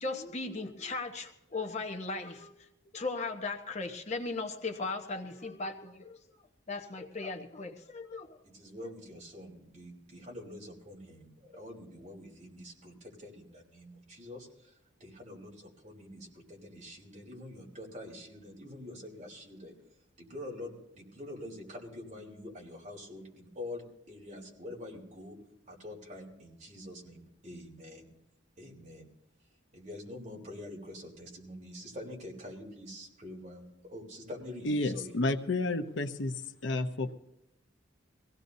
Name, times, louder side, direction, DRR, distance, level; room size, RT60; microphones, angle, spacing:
voice 1, 0.0-2.7 2.9-6.2 6.7-8.4, left 3 dB, 35° left, 4 dB, 1.0 m, -37 dB
voice 2, 8.4-19.7 20.2-25.4 25.7-28.1 28.6-29.1 29.7-35.1, left 1 dB, 40° right, -2 dB, 3.6 m, -46 dB
voice 3, 34.6-36.3 36.6-37.1, left 2 dB, 75° left, 8 dB, 0.9 m, -30 dB
23.0 x 17.0 x 2.7 m, 0.87 s
head